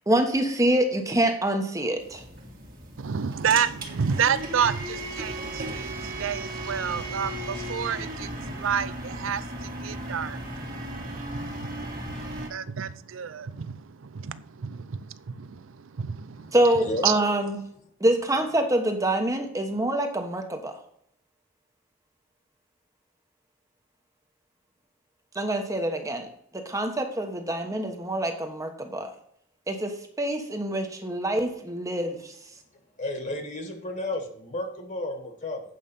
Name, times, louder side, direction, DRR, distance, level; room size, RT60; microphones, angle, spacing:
voice 1, 0.1-2.2 16.5-17.6 18.0-20.7 25.3-26.3 26.5-29.1 29.7-32.3, right 1 dB, 15° right, 1.2 m, -25 dB
sound 1, 2.0-12.5, right 1 dB, 50° right, 1.9 m, -36 dB
voice 2, 3.0-16.5 17.0-17.2, right 7 dB, 75° right, 0.5 m, -30 dB
voice 3, 33.0-35.6, left 1 dB, 40° left, 1.8 m, -32 dB
8.6 x 5.4 x 5.5 m
head